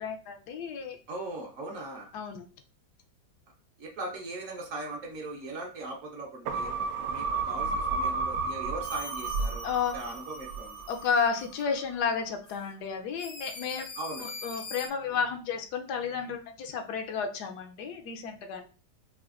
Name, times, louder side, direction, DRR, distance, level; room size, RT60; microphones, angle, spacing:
voice 1, 0.0-1.0 2.1-2.5 9.6-9.9 10.9-13.9 14.2-18.7, left 6 dB, 75° left, 5 dB, 1.1 m, -32 dB
voice 2, 1.1-2.1 3.8-6.7 7.1-9.7 9.9-10.8 14.0-14.3, right 2 dB, 60° right, 0 dB, 1.0 m, -39 dB
sound 1, 6.5-11.1 11.5-11.6, right 4 dB, 80° right, 1.2 m, -32 dB
sound 2, 8.8-11.6 12.4-12.6 13.2-14.9, left 3 dB, 45° left, 0.6 m, -44 dB
5.0 x 2.5 x 2.4 m, 0.36 s
omnidirectional pair, 1.8 m